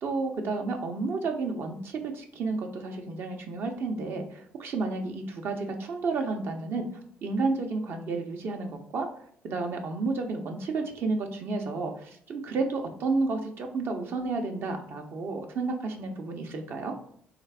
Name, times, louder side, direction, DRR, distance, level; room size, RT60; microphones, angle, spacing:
voice 1, 0.0-6.9 7.2-9.1 9.4-16.9, right 3 dB, 60° right, 4 dB, 0.7 m, -31 dB
3.7 x 2.4 x 3.4 m, 0.64 s
cardioid pair, 90°, 4 cm